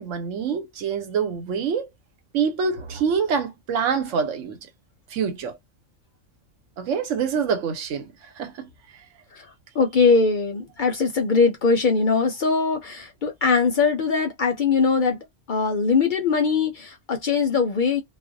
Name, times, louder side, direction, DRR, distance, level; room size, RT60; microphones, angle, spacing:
voice 1, 0.0-1.9 2.3-4.6 5.1-5.6 6.8-8.7, right 6 dB, 90° right, 1.1 m, -26 dB
voice 2, 9.7-15.2 15.5-18.0, left 4 dB, 55° left, 0.6 m, -21 dB
2.5 x 2.0 x 2.5 m
omnidirectional pair, 1.2 m